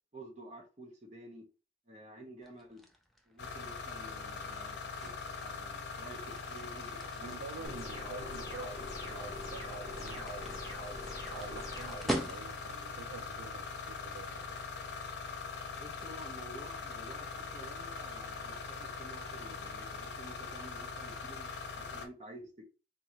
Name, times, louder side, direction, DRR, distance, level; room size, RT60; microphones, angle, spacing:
voice 1, 0.1-1.4 1.9-2.8 3.3-7.7 15.8-22.6, right 1 dB, 40° right, 0.7 m, -51 dB
sound 1, 2.4-12.8, equal, ahead, 0.4 m, -44 dB
sound 2, 3.4-22.1, left 4 dB, 70° left, 0.6 m, -42 dB
voice 2, 7.2-10.5 11.3-14.5, right 5 dB, 90° right, 0.3 m, -48 dB
sound 3, 7.6-12.0, left 1 dB, 20° left, 1.1 m, -44 dB
3.8 x 2.6 x 2.9 m
head